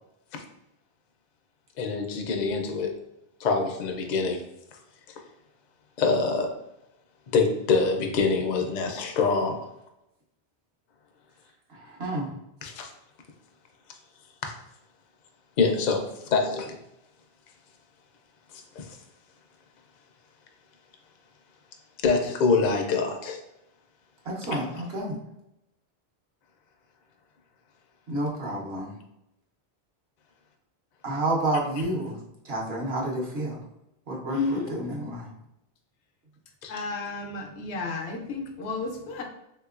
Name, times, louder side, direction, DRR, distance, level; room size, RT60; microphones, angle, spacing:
voice 1, 1.8-2.9 3.4-4.4 6.0-6.5 7.3-9.6 12.6-12.9 14.4-14.5 15.6-16.0 16.3-16.8 18.8-19.0 22.0-23.4 24.5-24.6 36.6-36.7, left 4 dB, 55° left, 3 dB, 0.5 m, -25 dB
voice 2, 24.3-25.2 28.1-28.9 31.0-32.2 32.4-33.6 34.1-35.3, right 1 dB, 75° right, -3 dB, 1.1 m, -29 dB
voice 3, 34.3-34.8 36.7-39.2, left 4 dB, 85° left, 3 dB, 0.9 m, -32 dB
3.4 x 2.9 x 2.4 m, 0.85 s
omnidirectional pair, 1.1 m